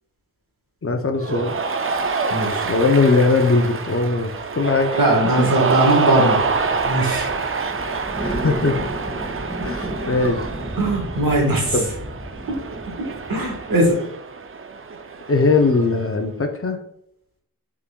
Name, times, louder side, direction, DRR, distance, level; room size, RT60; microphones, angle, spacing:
voice 1, 0.8-1.6 2.6-5.0 5.4-5.5 8.2-8.8 9.6-10.5 11.7-11.9 15.3-16.8, left 3 dB, 40° left, 5 dB, 0.6 m, -20 dB
Cheering, 1.2-16.0, right 4 dB, 40° right, 0.4 m, -26 dB
voice 2, 2.3-2.6 4.9-6.4 6.9-7.3 10.8-11.8 12.5-12.6 13.0-14.0, right 1 dB, 75° right, 0 dB, 1.4 m, -20 dB
sound 1, 6.3-13.9, right 1 dB, 20° right, 1.8 m, -32 dB
5.6 x 3.8 x 2.2 m, 0.72 s
wide cardioid pair, 65°, 35 cm